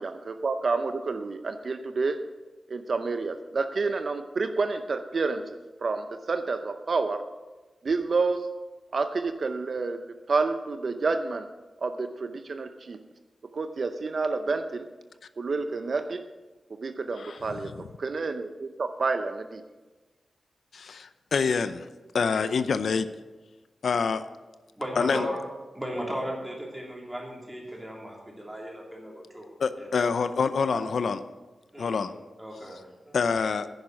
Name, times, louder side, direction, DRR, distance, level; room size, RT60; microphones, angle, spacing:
voice 1, 0.0-2.2 2.7-7.3 7.8-8.5 8.9-11.5 11.8-13.0 13.5-14.9 15.4-16.2 16.7-19.6, right 4 dB, 50° right, 8 dB, 0.6 m, -29 dB
voice 2, 20.7-21.9 22.1-23.1 23.8-24.2 25.0-25.3 29.6-31.2 31.8-32.1 33.1-33.7, left 5 dB, 75° left, 11 dB, 0.6 m, -26 dB
voice 3, 24.8-25.4 25.7-29.5 29.8-30.1 30.7-30.8 31.7-32.1 32.4-33.2, equal, 10° right, -2 dB, 3.1 m, -36 dB
10.5 x 10.5 x 6.2 m, 1.2 s
wide cardioid pair, 145°, 0 cm